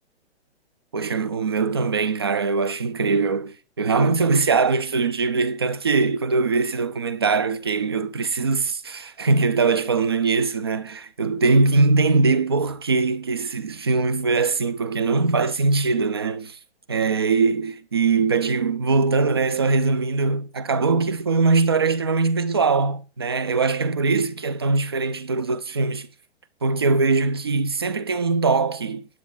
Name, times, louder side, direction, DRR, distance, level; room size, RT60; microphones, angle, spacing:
voice 1, 0.9-16.6 16.9-26.1 26.6-29.0, right 4 dB, 25° right, 0.4 m, -21 dB
9.6 x 8.4 x 3.8 m
hypercardioid pair, 170°, 32 cm